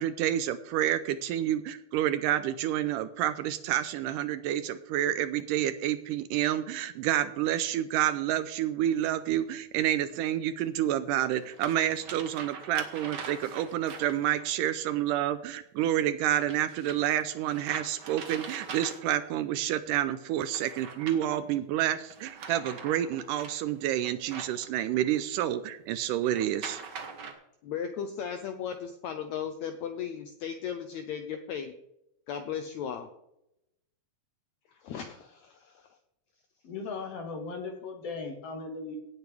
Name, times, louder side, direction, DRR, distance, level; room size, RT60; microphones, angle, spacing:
voice 1, 0.0-26.8, right 12 dB, 80° right, 12 dB, 2.0 m, -29 dB
sound 1, 8.9-9.0 10.6-10.7 11.3-14.5 16.4-19.3 20.3-21.5 22.0-25.2 26.2-27.3, right 5 dB, 55° right, 1.2 m, -43 dB
voice 2, 27.6-31.7 32.3-33.1 34.7-36.0, left 8 dB, 80° left, 7 dB, 1.6 m, -36 dB
voice 3, 36.6-39.0, left 4 dB, 55° left, 4 dB, 1.9 m, -37 dB
17.0 x 8.2 x 3.5 m, 0.82 s
omnidirectional pair, 4.0 m